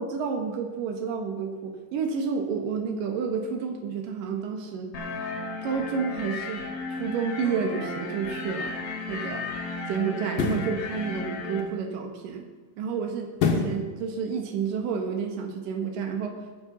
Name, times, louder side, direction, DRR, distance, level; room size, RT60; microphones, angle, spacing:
voice 1, 0.0-4.9 5.6-8.8 9.1-9.5 9.9-12.5 12.8-13.3 13.6-16.6, right 6 dB, 65° right, 3 dB, 2.9 m, -30 dB
sound 1, 4.9-11.6, left 3 dB, 50° left, 2.6 m, -34 dB
sound 2, 8.4-8.6 10.3-10.7 13.4-13.8 14.3-14.4, left 5 dB, 65° left, 2.8 m, -25 dB
21.5 x 8.0 x 4.1 m, 1.3 s
omnidirectional pair, 4.7 m